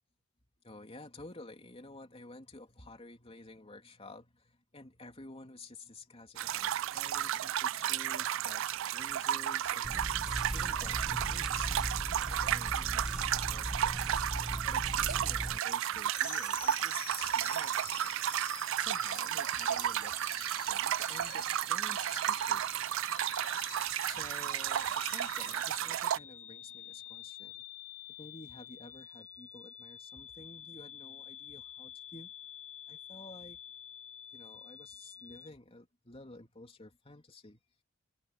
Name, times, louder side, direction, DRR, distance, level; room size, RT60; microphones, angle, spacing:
voice 1, 0.6-10.0 10.5-11.8 12.3-18.2 18.8-22.7 24.0-27.6 28.2-32.3 32.9-33.6 34.3-37.6, left 2 dB, 30° left, 3.0 m, -52 dB
sound 1, 6.4-26.2, right 11 dB, 65° right, 0.4 m, -33 dB
sound 2, 9.8-15.6, equal, 5° right, 0.6 m, -38 dB
sound 3, 16.1-35.5, left 11 dB, 75° left, 1.4 m, -48 dB
head